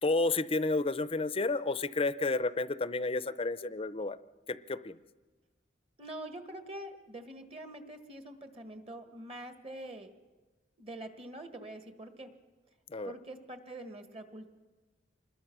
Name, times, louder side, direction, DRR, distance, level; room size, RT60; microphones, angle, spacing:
voice 1, 0.0-4.2 4.5-5.0 12.9-13.1, left 3 dB, 30° left, 15 dB, 0.6 m, -31 dB
voice 2, 6.0-10.1 10.8-12.3 13.0-14.5, right 1 dB, 35° right, 7 dB, 1.7 m, -45 dB
26.0 x 20.5 x 6.1 m, 1.3 s
head